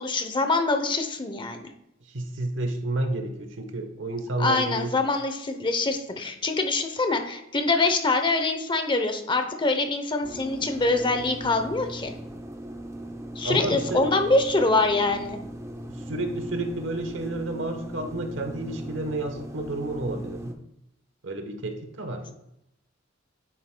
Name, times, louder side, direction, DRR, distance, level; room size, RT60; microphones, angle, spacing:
voice 1, 0.0-1.7 4.4-12.1 13.4-15.4, left 3 dB, 25° left, 6 dB, 0.7 m, -24 dB
voice 2, 2.1-4.9 13.4-14.0 15.9-20.6 21.2-22.3, right 2 dB, 70° right, 6 dB, 1.1 m, -31 dB
sound 1, 10.2-20.5, right 1 dB, 15° right, 0.6 m, -38 dB
9.3 x 7.7 x 2.2 m, 0.82 s
head